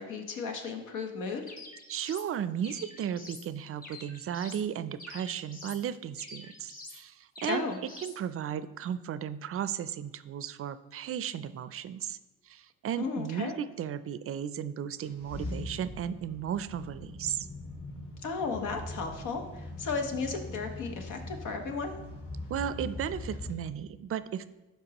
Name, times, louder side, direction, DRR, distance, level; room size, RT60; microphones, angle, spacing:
voice 1, 0.0-1.5 7.5-7.8 13.0-13.5 18.2-22.0, left 4 dB, 85° left, 5 dB, 1.1 m, -34 dB
sound 1, 1.5-2.3 2.6-3.5 3.8-4.7 5.0-5.8 6.2-7.0 7.4-8.2, left 2 dB, 30° left, 1.2 m, -47 dB
voice 2, 1.9-7.6 8.0-12.2 12.5-17.5 22.5-24.5, right 9 dB, 50° right, 14 dB, 0.4 m, -35 dB
sound 2, 15.0-23.5, left 1 dB, 45° left, 2.4 m, -41 dB
12.0 x 4.5 x 2.9 m, 1.1 s
cardioid pair, 90°, 30 cm